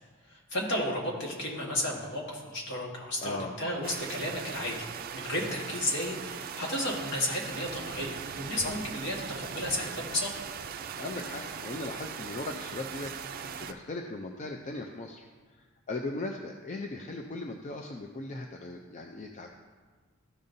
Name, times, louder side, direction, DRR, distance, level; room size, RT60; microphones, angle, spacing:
voice 1, 0.5-4.8 5.1-10.3, left 1 dB, 60° left, -2 dB, 1.6 m, -33 dB
voice 2, 3.2-3.6 8.6-8.8 10.9-19.5, left 2 dB, 35° left, 3 dB, 0.4 m, -38 dB
sound 1, 3.8-13.7, right 7 dB, 45° right, 0.4 m, -40 dB
13.5 x 5.3 x 2.6 m, 1.4 s
head